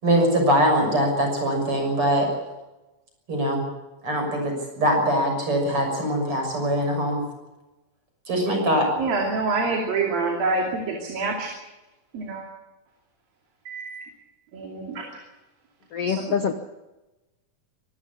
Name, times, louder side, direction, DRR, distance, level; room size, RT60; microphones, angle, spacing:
voice 1, 0.0-2.3 3.3-3.6 4.0-7.2 8.3-8.9, equal, 35° right, 2 dB, 7.3 m, -22 dB
voice 2, 9.0-11.5 12.1-12.4 13.7-14.1 14.5-15.2 16.1-16.3, right 3 dB, 75° right, 1 dB, 4.6 m, -27 dB
voice 3, 15.9-16.5, left 7 dB, 75° left, 7 dB, 1.4 m, -25 dB
25.0 x 14.5 x 8.5 m, 1.0 s
omnidirectional pair, 4.1 m